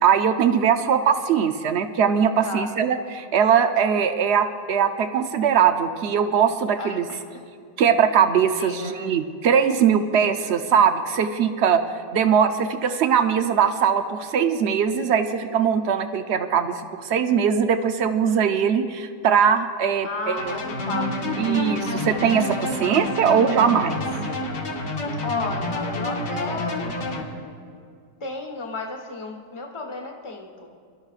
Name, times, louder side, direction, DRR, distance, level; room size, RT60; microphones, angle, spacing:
voice 1, 0.0-7.1 7.8-11.8 12.1-20.6 21.4-24.0, right 7 dB, 70° right, 8 dB, 0.6 m, -21 dB
voice 2, 2.4-2.8 6.8-7.2 8.6-9.1 20.0-21.6 25.2-26.9 28.2-30.7, left 3 dB, 20° left, 2 dB, 1.1 m, -33 dB
sound 1, 20.4-27.2, left 1 dB, 75° left, 2.1 m, -28 dB
26.0 x 12.5 x 2.4 m, 2.2 s
omnidirectional pair, 1.8 m